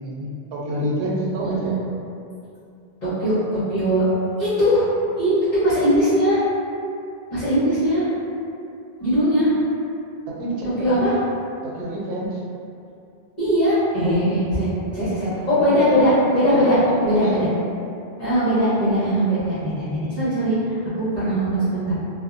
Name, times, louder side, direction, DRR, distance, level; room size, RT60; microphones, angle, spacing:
voice 1, 0.0-1.8 10.3-11.2 11.6-12.4 15.0-16.1 16.5-17.5, right 1 dB, 85° right, -4 dB, 0.8 m, -29 dB
voice 2, 1.4-1.7 3.0-4.0 4.4-4.8 5.2-6.4 7.3-8.1 9.0-9.5 10.8-11.1 13.4-14.7 14.9-15.1 15.5-16.8 17.0-17.5 18.2-21.9, equal, 45° left, -16 dB, 1.0 m, -20 dB
2.5 x 2.1 x 2.4 m, 2.5 s
omnidirectional pair, 1.0 m